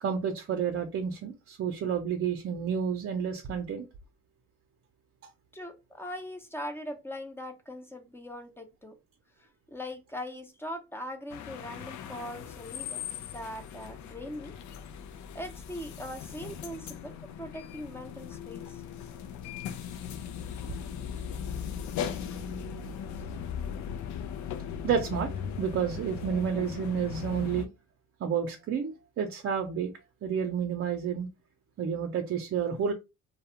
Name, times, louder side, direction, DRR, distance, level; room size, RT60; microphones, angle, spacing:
voice 1, 0.0-3.9 24.8-25.3 25.6-27.7 28.2-29.9 30.2-31.3 31.8-32.9, right 7 dB, 50° right, 0.5 m, -30 dB
voice 2, 5.5-9.0 9.4-13.0 13.3-14.5 15.3-18.8, equal, 10° left, 0.5 m, -41 dB
sound 1, 11.3-27.7, left 7 dB, 70° left, 0.4 m, -38 dB
2.3 x 2.1 x 2.8 m
cardioid pair, 90°, 30 cm